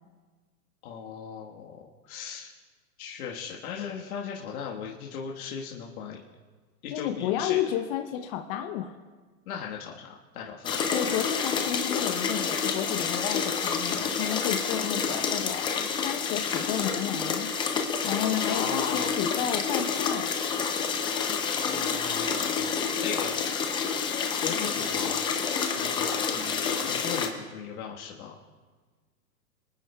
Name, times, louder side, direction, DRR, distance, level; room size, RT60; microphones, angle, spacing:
voice 1, 0.8-2.5 3.0-6.2 6.8-7.6 9.5-10.8 18.5-19.1 21.5-23.9 24.4-25.3 25.8-28.4, left 7 dB, 65° left, -2 dB, 1.6 m, -38 dB
voice 2, 6.9-8.9 10.9-15.7 16.0-17.5 18.0-20.4, left 10 dB, 35° left, 5 dB, 0.8 m, -31 dB
sound 1, 10.6-27.3, left 6 dB, 10° left, 0.5 m, -28 dB
28.0 x 9.8 x 2.3 m, 1.4 s
hypercardioid pair, 140°, 47 cm